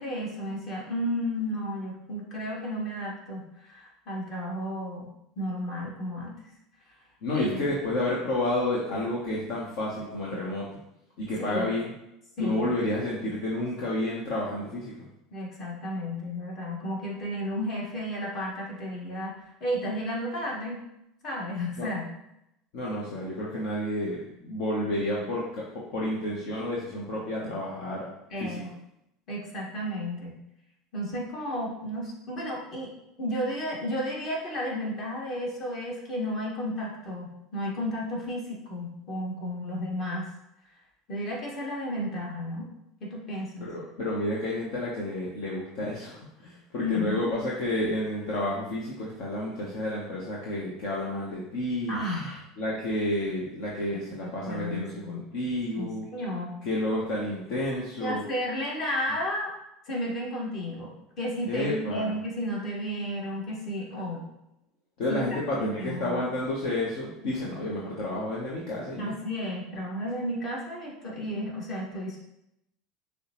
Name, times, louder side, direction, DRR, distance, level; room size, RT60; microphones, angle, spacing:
voice 1, 0.0-5.1 5.4-6.3 7.3-7.6 11.4-11.7 12.4-12.6 15.3-19.4 19.6-20.8 21.2-22.1 28.3-28.7 29.3-30.3 30.9-32.9 33.2-40.3 41.1-42.7 43.0-43.7 46.8-47.3 51.9-52.4 54.2-55.2 55.8-56.6 58.0-59.5 59.9-64.2 65.1-65.2 65.6-66.2 69.0-72.2, equal, 45° left, -3 dB, 1.6 m, -33 dB
voice 2, 7.2-10.7 11.2-11.9 12.4-14.9 21.8-21.9 22.7-28.1 28.4-28.6 43.6-52.0 52.6-56.1 56.6-58.2 61.5-62.1 65.0-69.1, left 1 dB, 65° left, -4 dB, 0.9 m, -30 dB
6.4 x 2.3 x 3.0 m, 0.83 s
hypercardioid pair, 80°, 0 cm